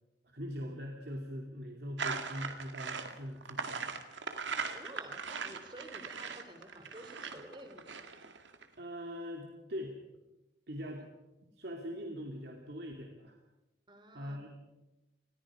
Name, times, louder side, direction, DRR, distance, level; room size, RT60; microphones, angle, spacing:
voice 1, 0.2-3.9 8.8-10.0 10.7-11.0 11.6-13.4 14.1-14.5, equal, 60° right, 1 dB, 2.7 m, -42 dB
sound 1, 2.0-8.6, right 5 dB, 85° right, 2.2 m, -39 dB
sound 2, 2.4-3.9, right 1 dB, 10° left, 5.9 m, -59 dB
voice 2, 4.7-8.1 13.9-14.4, right 1 dB, 25° right, 6 dB, 3.2 m, -51 dB
29.5 x 22.0 x 5.0 m, 1.0 s
head